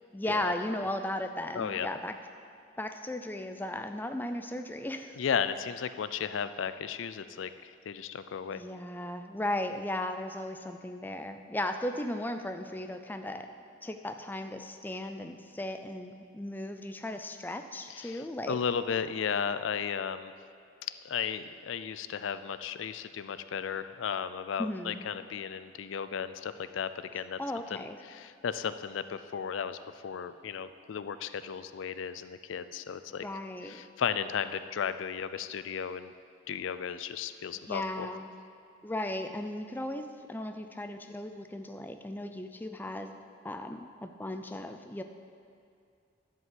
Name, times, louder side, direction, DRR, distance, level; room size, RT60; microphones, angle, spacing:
voice 1, 0.1-2.1 2.8-5.2 8.5-13.5 13.8-18.6 24.6-25.1 27.4-28.0 33.2-33.8 37.7-38.3 38.8-43.1 43.4-45.0, left 1 dB, 10° left, 7 dB, 0.4 m, -36 dB
voice 2, 1.5-1.9 5.2-8.6 17.9-20.3 21.0-27.4 27.7-33.3 33.6-36.1 36.5-38.1, left 7 dB, 80° left, 12 dB, 0.4 m, -35 dB
11.0 x 5.3 x 7.6 m, 2.5 s
head